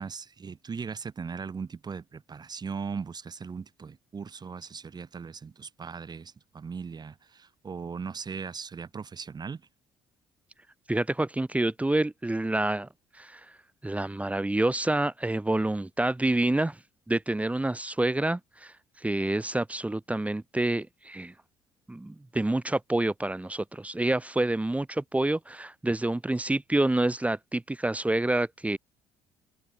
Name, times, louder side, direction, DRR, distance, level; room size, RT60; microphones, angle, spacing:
voice 1, 0.0-9.6, right 5 dB, 30° right, 6.3 m, -38 dB
voice 2, 10.9-12.9 13.1-13.5 13.8-16.8 17.1-21.3 21.9-28.8, right 2 dB, 10° right, 2.1 m, -28 dB
figure-of-eight pair, 50°, 13 cm